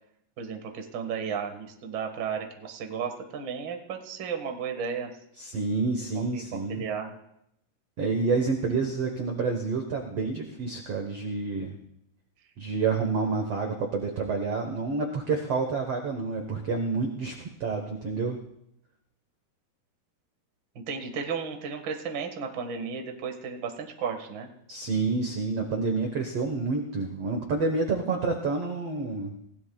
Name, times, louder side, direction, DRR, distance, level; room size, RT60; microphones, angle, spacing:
voice 1, 0.4-5.1 6.3-7.1 20.9-24.5, right 6 dB, 60° right, 4 dB, 1.2 m, -34 dB
voice 2, 5.4-6.8 8.0-11.8 12.6-17.3 17.6-18.4 24.7-29.3, right 4 dB, 75° right, 3 dB, 1.4 m, -28 dB
28.5 x 16.5 x 2.3 m, 0.78 s
omnidirectional pair, 4.8 m